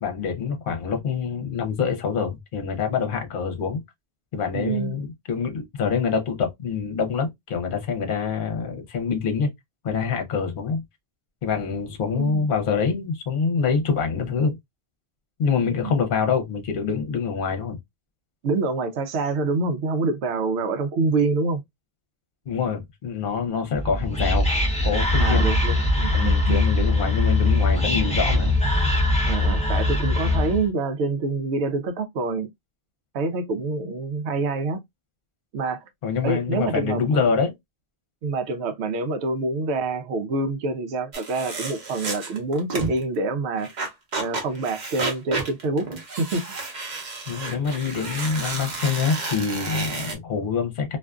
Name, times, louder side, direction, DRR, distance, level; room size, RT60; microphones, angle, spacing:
voice 1, 0.0-3.8 4.3-9.5 9.8-10.8 11.4-14.6 15.4-17.8 22.5-24.5 24.8-25.5 26.1-28.6 36.0-37.5 47.3-51.0, left 6 dB, 55° left, 0.8 m, -25 dB
voice 2, 4.5-5.0 12.1-12.5 15.7-15.9 18.4-21.6 25.2-26.7 29.2-32.5 33.1-34.8 35.5-35.8 36.2-37.2 38.2-43.7 44.2-45.9 46.2-46.4, right 3 dB, 90° right, 0.9 m, -26 dB
Whispering, 23.7-30.7, left 2 dB, 5° left, 0.7 m, -21 dB
sound 1, 41.1-43.0 43.6-50.1, right 3 dB, 45° right, 0.8 m, -31 dB
2.5 x 2.4 x 2.2 m
omnidirectional pair, 1.1 m